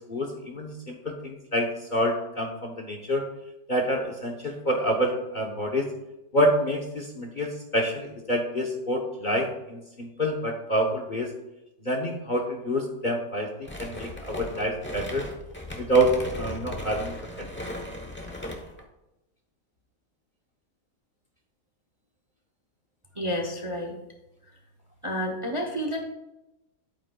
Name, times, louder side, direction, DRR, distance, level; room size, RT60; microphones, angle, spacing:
voice 1, 0.0-3.3 3.7-5.9 6.3-11.3 11.8-15.3 15.8-16.1 16.4-17.5, equal, 35° left, 1 dB, 0.9 m, -27 dB
sound 1, 13.6-18.8, left 1 dB, 10° left, 0.7 m, -37 dB
voice 2, 23.1-24.0 25.0-26.0, equal, 25° right, 2 dB, 0.7 m, -30 dB
10.5 x 8.8 x 2.3 m, 0.93 s
omnidirectional pair, 1.7 m